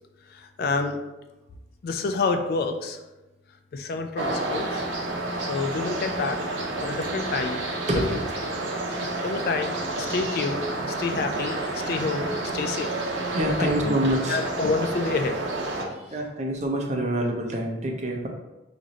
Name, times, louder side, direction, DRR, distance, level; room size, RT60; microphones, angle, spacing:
voice 1, 0.6-1.0 1.8-3.0 3.7-4.8 5.5-6.5 6.8-7.6 8.1-8.2 9.2-9.7 10.0-10.6 10.9-11.6 11.9-12.3 12.5-12.9 13.6-13.7 14.3-15.4, left 4 dB, 55° left, 6 dB, 0.3 m, -28 dB
sound 1, 4.2-15.9, right 2 dB, 80° right, 0.6 m, -30 dB
voice 2, 7.9-8.3 8.9-9.0 13.3-14.4 15.9-18.3, right 1 dB, 40° right, 1 dB, 0.5 m, -26 dB
3.0 x 2.5 x 3.9 m, 1.0 s
head